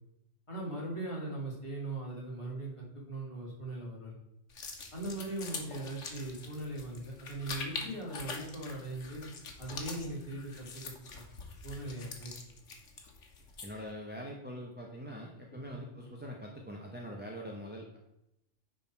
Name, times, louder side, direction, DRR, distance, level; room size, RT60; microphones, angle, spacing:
voice 1, 0.5-4.2 4.9-9.2 9.6-11.2 11.6-12.3 15.5-15.8, right 2 dB, 25° left, -5 dB, 2.5 m, -40 dB
sound 1, 4.5-13.9, left 4 dB, 90° left, 1.5 m, -44 dB
voice 2, 13.6-18.0, equal, 10° right, -1 dB, 0.8 m, -43 dB
9.7 x 4.0 x 4.5 m, 0.84 s
omnidirectional pair, 1.2 m